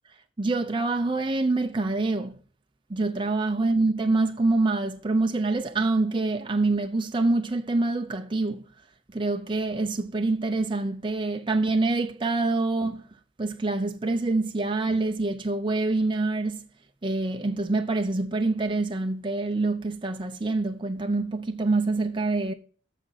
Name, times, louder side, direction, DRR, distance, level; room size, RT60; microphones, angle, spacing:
voice 1, 0.4-2.4 2.9-8.6 9.1-13.0 13.4-16.6 17.0-22.5, right 2 dB, 25° right, 0.5 m, -26 dB
13.5 x 5.0 x 4.1 m
head